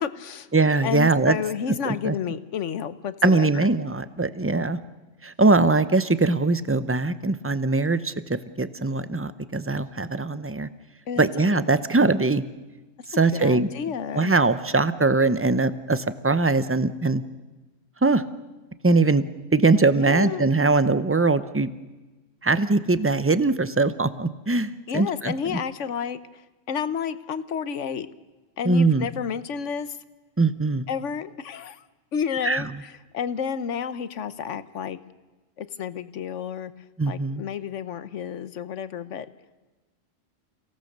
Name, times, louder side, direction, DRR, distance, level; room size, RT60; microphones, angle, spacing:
voice 1, 0.0-0.5 0.8-3.7 11.1-11.3 13.3-14.3 19.9-20.5 24.9-26.4 26.7-28.1 28.6-30.0 30.9-31.8 32.1-35.0 35.6-36.7 37.1-39.3, left 7 dB, 70° left, 14 dB, 1.3 m, -31 dB
voice 2, 0.5-1.3 1.8-2.1 3.2-4.8 5.2-10.7 11.2-12.4 13.2-13.7 14.1-17.2 18.0-18.2 18.8-19.2 19.5-21.7 22.4-25.6 28.6-29.1 30.4-30.8 32.5-32.6 37.0-37.4, right 3 dB, 15° right, 13 dB, 0.5 m, -21 dB
29.5 x 17.5 x 6.6 m, 1.2 s
omnidirectional pair, 1.3 m